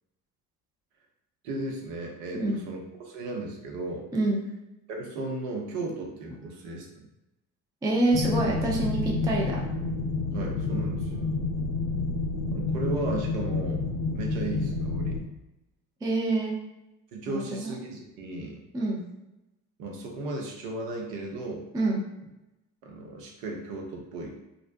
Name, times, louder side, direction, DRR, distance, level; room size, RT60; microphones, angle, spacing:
voice 1, 1.4-4.1 4.9-6.9 10.3-11.3 12.5-13.9 14.1-15.2 17.1-18.6 19.8-21.6 22.8-24.4, right 2 dB, 65° right, 0 dB, 0.7 m, -35 dB
voice 2, 7.8-9.6 16.0-16.6 17.3-17.7 18.7-19.0 21.7-22.0, right 2 dB, 10° right, -2 dB, 0.3 m, -26 dB
sound 1, 8.1-15.2, left 3 dB, 65° left, 0.5 m, -29 dB
2.5 x 2.1 x 2.5 m, 0.95 s
figure-of-eight pair, 55°, 50 cm